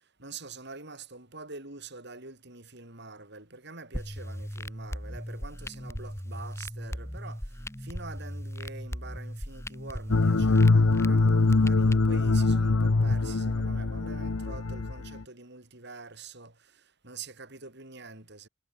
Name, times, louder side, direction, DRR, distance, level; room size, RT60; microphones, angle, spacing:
voice 1, 0.2-7.4 7.8-16.5 17.0-18.5, right 3 dB, 55° right, 5.7 m, -45 dB
sound 1, 3.9-11.9, equal, 15° left, 4.8 m, -38 dB
sound 2, 10.1-15.2, left 3 dB, 85° left, 0.9 m, -23 dB
head